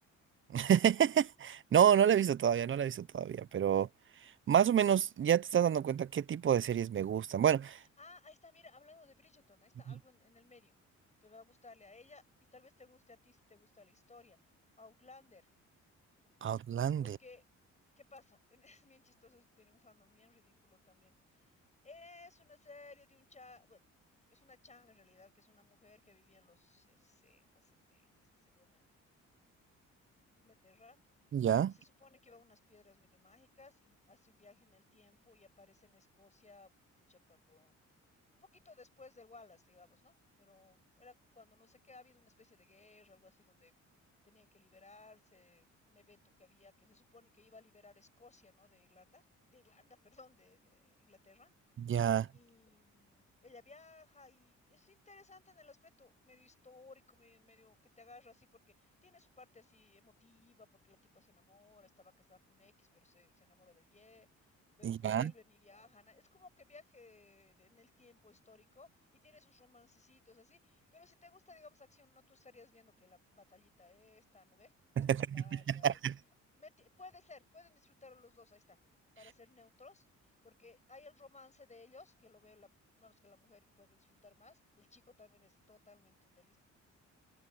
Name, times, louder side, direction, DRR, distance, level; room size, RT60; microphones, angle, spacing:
voice 1, 0.5-3.9 4.5-7.8 16.4-17.2 31.3-31.7 51.9-52.3 64.8-65.3 75.0-76.1, right 9 dB, 40° right, 0.7 m, -29 dB
voice 2, 8.0-10.7 11.2-12.2 12.5-14.4 14.8-15.5 17.0-17.5 18.0-21.5 21.8-23.9 24.3-29.3 30.3-31.0 31.7-36.7 37.0-37.8 38.3-43.8 44.2-49.2 49.5-51.5 52.3-74.7 75.0-76.0 76.6-78.8 79.2-86.6, left 3 dB, 25° left, 6.7 m, -60 dB
cardioid pair, 90°, 30 cm